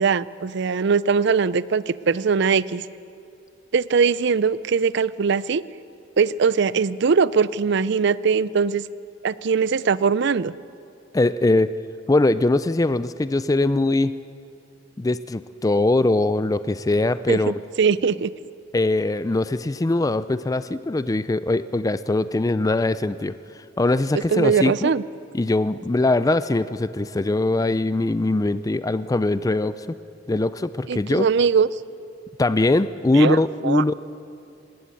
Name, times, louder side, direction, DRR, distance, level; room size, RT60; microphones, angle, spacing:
voice 1, 0.0-2.9 3.7-5.6 6.2-8.8 9.2-10.5 17.3-18.3 24.3-25.0 30.9-31.7 33.1-33.4 33.6-33.8, right 5 dB, 65° right, 18 dB, 0.5 m, -21 dB
voice 2, 11.1-11.7 12.1-14.2 15.0-17.5 18.7-23.3 23.8-24.9 25.3-30.0 30.3-31.3 32.4-33.9, left 2 dB, 20° left, 14 dB, 0.4 m, -21 dB
19.5 x 18.5 x 8.5 m, 2.6 s
head